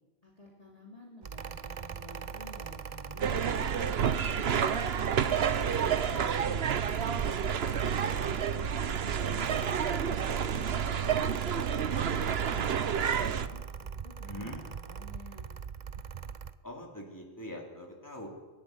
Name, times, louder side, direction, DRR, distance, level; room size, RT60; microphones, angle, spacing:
voice 1, 0.2-4.7 5.2-7.8 8.2-11.1 11.5-12.0 12.3-15.5, left 1 dB, 35° left, -2 dB, 3.2 m, -52 dB
Mechanical fan, 1.2-16.5, right 7 dB, 45° right, 0.8 m, -42 dB
sound 1, 3.2-13.5, right 7 dB, 75° right, 1.1 m, -29 dB
voice 2, 14.3-14.6 16.6-18.3, left 1 dB, 15° left, 0 dB, 3.8 m, -43 dB
22.5 x 12.5 x 9.5 m, 1.3 s
omnidirectional pair, 1.1 m